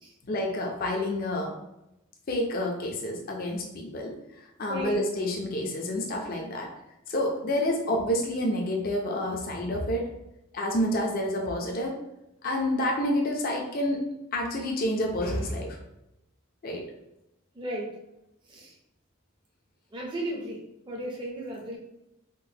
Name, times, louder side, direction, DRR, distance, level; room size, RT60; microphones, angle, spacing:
voice 1, 0.3-1.5 2.3-4.1 4.6-6.7 7.1-10.1 10.5-12.0 12.4-14.0 14.3-15.8 16.6-16.8, left 1 dB, 45° left, 0 dB, 0.5 m, -28 dB
voice 2, 17.5-17.9 18.5-18.7 19.9-20.6 20.8-21.8, right 1 dB, 20° right, -3 dB, 0.5 m, -34 dB
3.7 x 2.1 x 2.7 m, 0.88 s
head